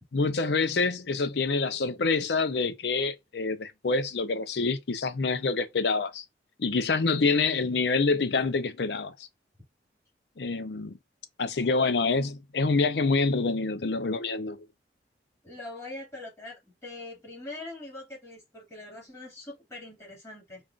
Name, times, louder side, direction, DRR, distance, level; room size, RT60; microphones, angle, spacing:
voice 1, 0.1-6.2 6.6-9.1 10.4-10.9 11.4-14.6, left 4 dB, 70° left, 0.6 m, -26 dB
voice 2, 11.6-12.1 15.4-20.6, left 2 dB, 15° left, 2.3 m, -43 dB
5.3 x 2.5 x 2.4 m
head